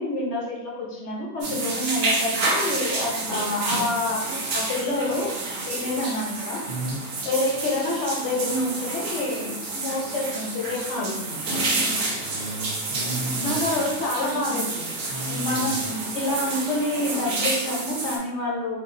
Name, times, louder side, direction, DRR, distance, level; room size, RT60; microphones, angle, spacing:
voice 1, 0.0-4.2 4.5-5.3 5.7-6.6 7.2-11.5 13.4-14.9 15.3-18.8, left 1 dB, 55° left, -3 dB, 1.1 m, -27 dB
sound 1, 1.4-18.2, right 2 dB, 90° right, 1.3 m, -29 dB
voice 2, 6.7-7.0 11.5-13.7 15.1-15.8, right 2 dB, 65° right, -4 dB, 0.6 m, -34 dB
3.1 x 2.6 x 3.7 m, 0.97 s
omnidirectional pair, 1.5 m